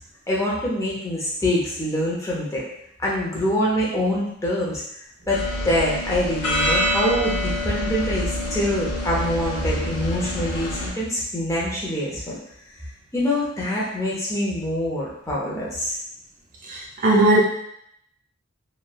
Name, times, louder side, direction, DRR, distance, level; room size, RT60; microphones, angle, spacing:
voice 1, 0.3-2.6 3.0-4.8 5.3-12.4 13.1-16.0, left 1 dB, 15° left, -6 dB, 0.6 m, -25 dB
sound 1, 5.3-10.9, left 1 dB, 85° left, 0.7 m, -26 dB
voice 2, 16.7-17.4, right 1 dB, 40° right, -3 dB, 0.4 m, -18 dB
3.1 x 2.2 x 2.3 m, 0.72 s
head